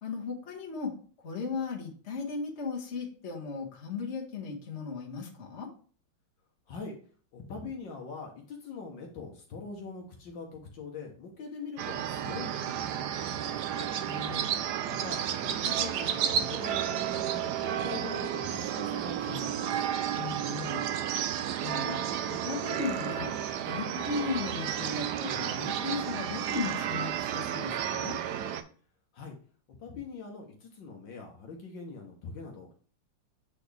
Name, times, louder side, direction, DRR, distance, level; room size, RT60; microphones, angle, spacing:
voice 1, 0.0-0.9 1.2-5.7 14.0-14.6 20.1-20.9 21.6-22.0 22.3-23.3 23.6-28.2, left 4 dB, 35° left, -2 dB, 1.6 m, -36 dB
voice 2, 7.3-13.9 14.8-19.8 29.1-29.4 29.8-32.7, left 4 dB, 65° left, 1 dB, 1.7 m, -43 dB
sound 1, 11.8-28.6, right 9 dB, 70° right, 1.0 m, -32 dB
8.2 x 4.2 x 3.4 m, 0.43 s
omnidirectional pair, 2.2 m